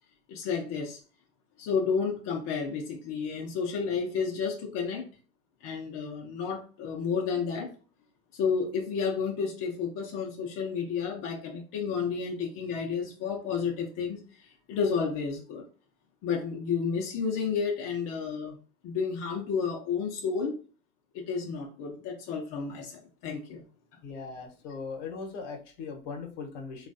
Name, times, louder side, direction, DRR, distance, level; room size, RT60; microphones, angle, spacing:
voice 1, 0.3-1.0 1.6-5.1 5.6-7.7 8.4-15.7 16.2-18.6 18.8-20.6 21.1-23.6, left 6 dB, 45° left, 0 dB, 0.7 m, -31 dB
voice 2, 24.0-26.9, left 5 dB, 70° left, 3 dB, 1.0 m, -39 dB
3.1 x 2.4 x 2.6 m, 0.37 s
hypercardioid pair, 105°, 36 cm